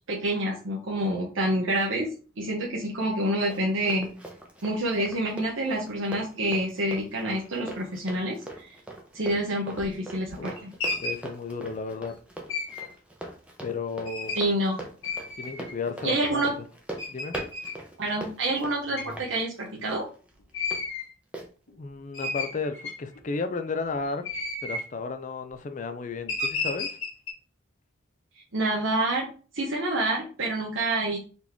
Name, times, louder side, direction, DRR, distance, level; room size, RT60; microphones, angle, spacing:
voice 1, 0.1-2.1 2.4-4.1 4.6-8.7 9.1-10.7 14.3-14.8 16.0-16.5 18.0-20.0 28.5-29.3 29.5-31.2, right 1 dB, 75° right, 0.9 m, -27 dB
Run, 3.0-20.8 21.3-21.5, right 1 dB, 5° right, 0.6 m, -42 dB
sound 1, 9.8-9.9 10.3-11.2 12.5-12.9 14.0-14.4 15.0-15.7 16.4-16.5 17.0-17.7 19.0-19.1 20.5-21.1 21.7-21.8 22.1-23.2 24.1-24.9 26.3-27.3, left 3 dB, 90° left, 1.4 m, -32 dB
voice 2, 11.0-12.2 13.6-14.4 15.4-16.5 17.1-17.4 21.8-24.2 24.6-27.0, left 4 dB, 40° left, 0.4 m, -33 dB
4.1 x 3.0 x 3.5 m
head